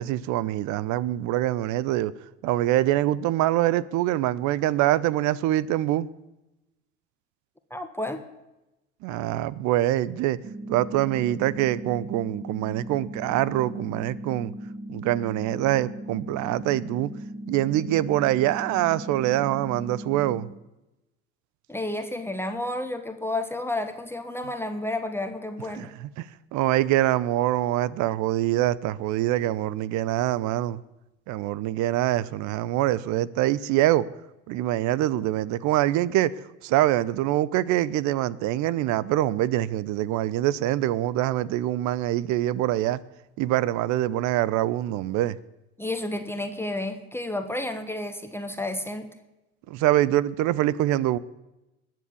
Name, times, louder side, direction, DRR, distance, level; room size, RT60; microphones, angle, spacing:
voice 1, 0.0-2.1 2.4-6.1 9.0-10.4 10.7-14.5 14.9-17.1 17.5-20.5 25.7-30.8 31.3-34.1 34.5-36.3 36.6-43.0 43.4-45.4 49.7-51.2, right 14 dB, 50° right, 0.7 m, -24 dB
voice 2, 7.7-8.2 21.7-25.9 45.8-49.1, left 1 dB, 5° left, 1.5 m, -31 dB
sound 1, 10.4-20.4, right 1 dB, 30° right, 2.8 m, -38 dB
21.0 x 7.7 x 8.5 m
hypercardioid pair, 70°, 38 cm